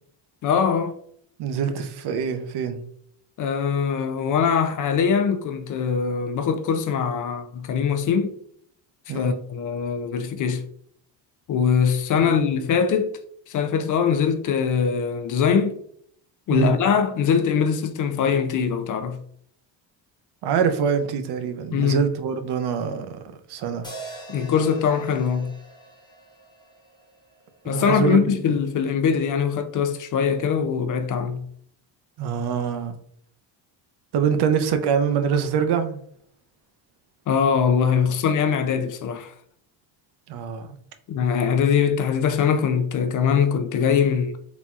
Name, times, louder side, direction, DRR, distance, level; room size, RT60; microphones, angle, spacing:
voice 1, 0.4-1.0 3.4-8.4 9.1-10.7 11.5-13.1 13.5-15.8 16.5-19.2 21.7-22.0 24.3-25.5 27.7-31.5 37.3-39.3 41.1-44.3, left 6 dB, 45° left, 0.4 m, -22 dB
voice 2, 1.4-2.8 9.1-9.3 12.2-12.3 16.5-16.7 20.4-23.1 23.5-23.9 27.6-28.2 32.2-32.9 34.1-36.0 40.3-40.7, right 7 dB, 60° right, 0.7 m, -24 dB
sound 1, 23.8-28.1, right 2 dB, 10° left, 0.9 m, -43 dB
4.2 x 4.0 x 2.4 m
cardioid pair, 145°, 44 cm